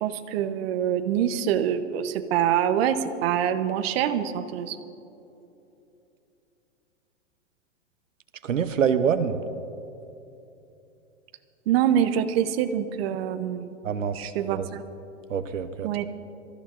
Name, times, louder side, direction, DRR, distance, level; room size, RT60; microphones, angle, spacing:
voice 1, 0.0-4.8 11.7-13.8 14.1-14.8 15.8-16.1, right 9 dB, 50° right, 9 dB, 0.9 m, -25 dB
voice 2, 8.4-9.4 13.8-14.6 15.3-15.9, right 7 dB, 85° right, 10 dB, 0.8 m, -25 dB
25.5 x 14.0 x 2.6 m, 2.8 s
hypercardioid pair, 115°, 37 cm